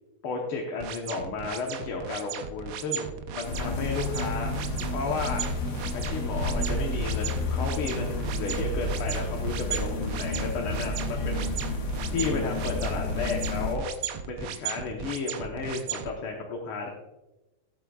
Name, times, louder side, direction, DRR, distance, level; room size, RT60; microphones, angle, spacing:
voice 1, 0.2-4.5 4.9-5.4 5.9-11.5 12.1-13.9 14.2-16.9, left 4 dB, 85° left, 0 dB, 2.0 m, -33 dB
sound 1, 0.8-16.1, right 9 dB, 80° right, 1.6 m, -37 dB
sound 2, 3.4-13.7, left 2 dB, 65° left, 2.1 m, -31 dB
17.5 x 8.1 x 2.4 m, 1.0 s
omnidirectional pair, 2.3 m